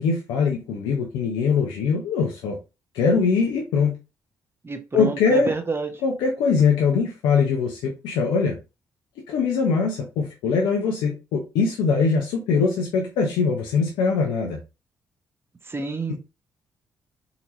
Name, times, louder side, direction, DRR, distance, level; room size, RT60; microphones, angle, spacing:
voice 1, 0.0-2.6 2.9-4.0 4.9-5.5 6.0-8.6 9.3-14.6, left 5 dB, 80° left, 1 dB, 0.7 m, -22 dB
voice 2, 4.6-5.9 15.7-16.2, right 3 dB, 30° right, 6 dB, 0.9 m, -28 dB
4.0 x 2.8 x 2.8 m, 0.28 s
hypercardioid pair, 45°, 8 cm